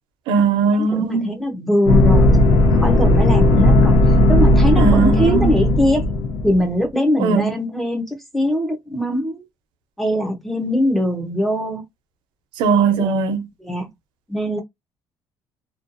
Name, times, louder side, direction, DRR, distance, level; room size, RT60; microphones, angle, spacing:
voice 1, 0.3-1.4 4.8-5.6 7.2-7.5 12.6-13.5, right 5 dB, 85° right, 0.7 m, -19 dB
voice 2, 0.8-2.5 2.7-4.0 4.3-6.1 6.4-9.5 10.0-11.8 13.0-13.2 13.6-13.9 14.3-14.6, equal, ahead, 0.5 m, -21 dB
sound 1, 1.9-6.7, left 1 dB, 90° left, 0.7 m, -15 dB
2.6 x 2.2 x 2.5 m
cardioid pair, 170°, 8 cm